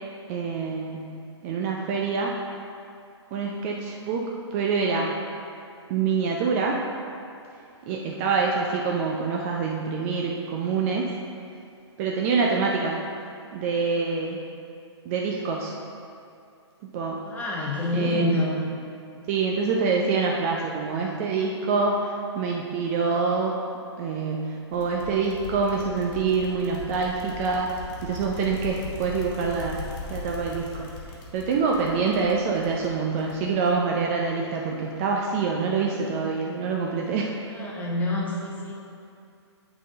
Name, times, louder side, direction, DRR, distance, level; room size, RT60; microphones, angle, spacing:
voice 1, 0.3-1.1 1.4-2.3 3.3-5.2 5.9-6.8 7.9-11.1 12.0-13.0 13.5-14.4 15.1-15.7 16.9-17.2 17.9-18.3 19.3-23.5 24.0-27.7 28.0-29.8 30.1-30.9 31.3-37.3, right 4 dB, 30° right, -1 dB, 0.5 m, -26 dB
voice 2, 7.9-8.2 17.2-18.7 37.4-38.7, left 2 dB, 10° left, -5 dB, 1.0 m, -28 dB
sound 1, 24.7-34.0, left 3 dB, 45° left, 1.4 m, -39 dB
9.0 x 3.7 x 3.8 m, 2.5 s
figure-of-eight pair, 130°, 15 cm